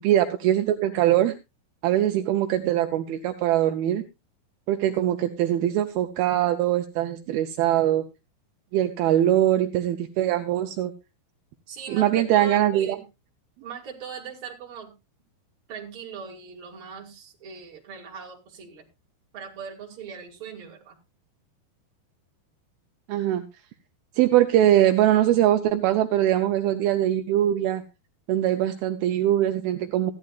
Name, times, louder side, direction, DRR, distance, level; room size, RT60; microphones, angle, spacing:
voice 1, 0.0-1.3 1.8-4.0 4.7-8.1 8.7-10.9 11.9-13.0 23.1-23.5 24.2-27.8 28.3-30.1, right 12 dB, 80° right, 7 dB, 2.5 m, -22 dB
voice 2, 11.7-13.0 13.6-14.9 15.7-18.8 19.3-21.0, right 6 dB, 35° right, -1 dB, 2.8 m, -40 dB
15.5 x 11.5 x 2.4 m, 0.24 s
omnidirectional pair, 4.5 m